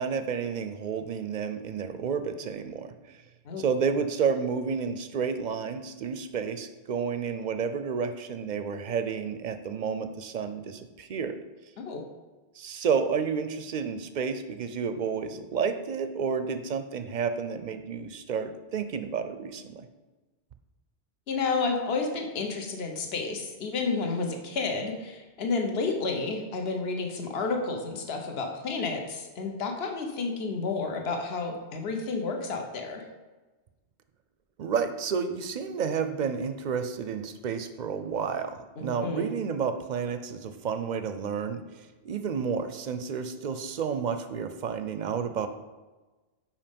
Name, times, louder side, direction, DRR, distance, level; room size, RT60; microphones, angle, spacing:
voice 1, 0.0-3.2 3.6-11.4 12.6-19.9 34.6-45.5, right 6 dB, 55° right, 9 dB, 0.5 m, -31 dB
voice 2, 21.3-33.0 38.8-39.3, left 4 dB, 65° left, 4 dB, 1.2 m, -31 dB
5.6 x 5.1 x 5.2 m, 1.2 s
omnidirectional pair, 1.1 m